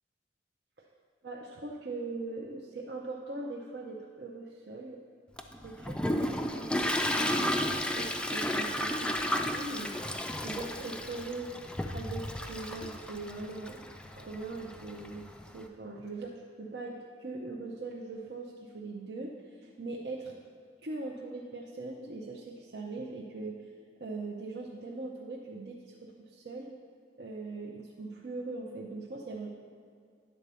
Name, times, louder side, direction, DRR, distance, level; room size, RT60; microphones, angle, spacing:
voice 1, 1.2-5.0 5.6-9.9 10.3-11.5 11.9-13.8 14.1-20.4 20.8-23.7 24.0-26.7 27.2-29.5, right 3 dB, 65° right, -1 dB, 0.6 m, -41 dB
Toilet flush, 5.4-15.6, left 1 dB, 5° left, 0.3 m, -33 dB
9.6 x 4.1 x 6.8 m, 2.2 s
head